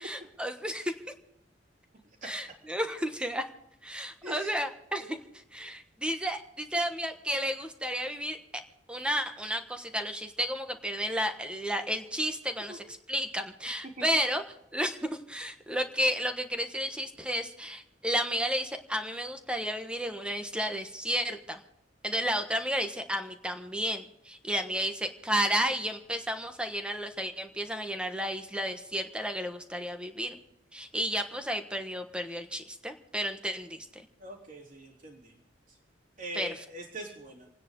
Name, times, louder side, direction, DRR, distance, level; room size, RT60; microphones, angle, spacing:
voice 1, 0.0-0.9 2.2-3.5 3.8-5.2 5.5-8.4 8.9-14.4 14.7-21.6 22.0-30.4 30.7-34.0 36.3-36.5, equal, 5° right, 6 dB, 1.3 m, -32 dB
voice 2, 34.2-35.3 36.2-37.5, right 1 dB, 45° right, -1 dB, 3.7 m, -42 dB
29.0 x 9.9 x 3.9 m, 0.83 s
head